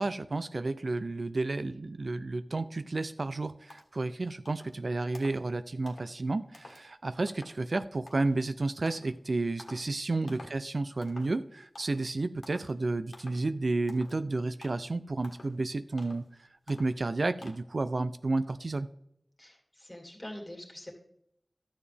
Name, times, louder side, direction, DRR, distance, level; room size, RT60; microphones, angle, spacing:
voice 1, 0.0-18.9, right 2 dB, 65° right, 12 dB, 0.3 m, -31 dB
sound 1, 3.3-3.4 3.7-4.1 4.4-4.8 5.1-5.5 5.9-6.1 6.5-6.8 7.3-7.6 8.1-8.4 8.9-9.2 9.6-9.9 10.3-10.6 11.0-11.4 11.7-12.1 12.4-12.7 13.1-13.5 13.9-14.2 14.6-14.9 15.2-15.6 16.0-16.3 16.7-17.0 17.4-17.5, left 2 dB, 80° left, 1.4 m, -51 dB
voice 2, 19.4-20.9, left 1 dB, 20° left, 0 dB, 2.2 m, -45 dB
12.5 x 7.0 x 3.4 m, 0.73 s
wide cardioid pair, 65°, 0 cm